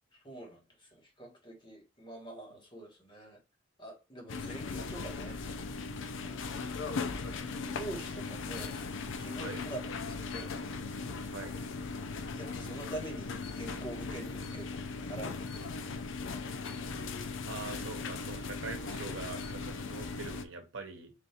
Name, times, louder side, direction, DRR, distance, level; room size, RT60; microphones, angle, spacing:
voice 1, 0.1-3.4 3.8-5.4 6.2-8.8 9.2-10.5 12.3-15.7, right 2 dB, 25° left, 1.3 m, -46 dB
sound 1, 4.3-20.4, left 4 dB, 70° left, 0.5 m, -38 dB
voice 2, 17.5-21.1, right 3 dB, 75° right, 0.9 m, -43 dB
3.5 x 2.6 x 4.2 m
head